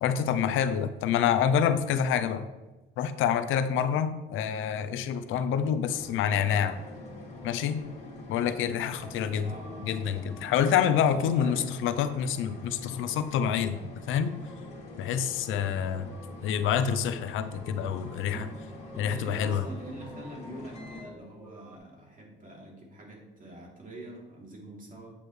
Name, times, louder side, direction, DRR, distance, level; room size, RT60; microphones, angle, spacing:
voice 1, 0.0-2.5 3.0-6.8 7.4-7.8 8.3-9.6 9.8-13.8 14.1-14.3 15.0-16.1 16.4-18.5 19.0-19.7, left 8 dB, 90° left, 11 dB, 0.6 m, -27 dB
sound 1, 5.8-21.0, left 2 dB, 35° left, 2.7 m, -45 dB
sound 2, 6.1-21.8, equal, 10° right, 1.2 m, -51 dB
voice 2, 9.4-9.9 11.1-11.7 18.9-25.1, right 1 dB, 40° right, -2 dB, 3.1 m, -45 dB
8.9 x 8.3 x 3.3 m, 1.1 s
cardioid pair, 90°, 20 cm